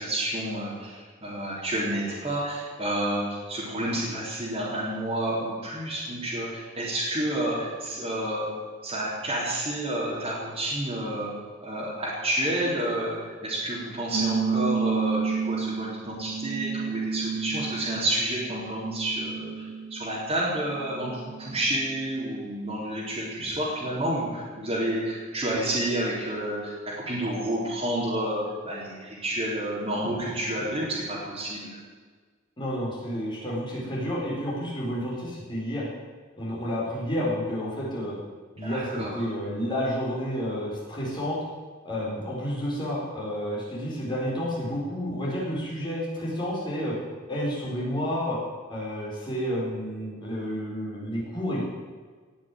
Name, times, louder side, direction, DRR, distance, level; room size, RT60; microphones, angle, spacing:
voice 1, 0.0-8.5 8.8-11.3 11.6-31.7 38.6-39.3, right 1 dB, 30° right, -8 dB, 3.9 m, -30 dB
sound 1, 14.1-20.2 20.6-22.0, right 5 dB, 50° right, 0.7 m, -31 dB
voice 2, 32.6-35.8 36.4-38.2 38.5-41.4 41.8-46.9 47.3-48.4 48.7-51.6, equal, 25° left, -6 dB, 4.7 m, -30 dB
18.0 x 7.3 x 9.3 m, 1.5 s
head